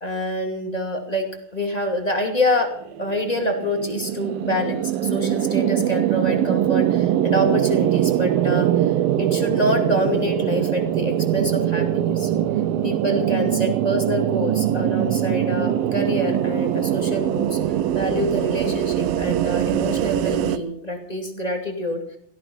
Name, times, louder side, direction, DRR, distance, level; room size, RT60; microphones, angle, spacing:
voice 1, 0.0-2.7 3.0-12.3 12.8-22.2, left 1 dB, 15° left, 3 dB, 1.9 m, -26 dB
sound 1, 2.8-20.6, right 11 dB, 85° right, 2.6 m, -22 dB
17.0 x 15.0 x 5.5 m, 0.65 s
omnidirectional pair, 4.1 m